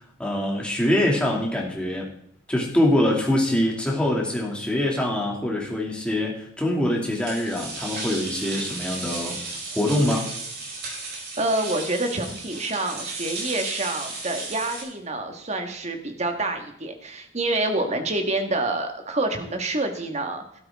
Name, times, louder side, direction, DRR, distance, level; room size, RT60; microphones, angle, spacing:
voice 1, 0.2-2.1 2.5-9.4 9.7-10.3, left 1 dB, 5° left, -2 dB, 2.5 m, -24 dB
sound 1, 7.1-14.8, right 3 dB, 55° right, 5.4 m, -34 dB
voice 2, 11.1-20.4, right 2 dB, 35° right, 5 dB, 1.6 m, -27 dB
12.5 x 12.5 x 3.6 m, 0.69 s
head